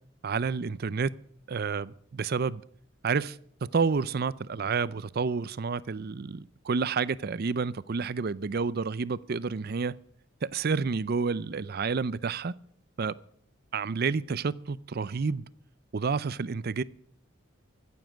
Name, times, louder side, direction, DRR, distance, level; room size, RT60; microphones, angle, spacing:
voice 1, 0.2-1.1 1.5-2.6 3.0-10.0 10.4-12.5 13.0-13.2 13.7-15.5 15.9-16.8, right 5 dB, 45° right, 0.5 m, -29 dB
15.5 x 7.2 x 8.8 m
head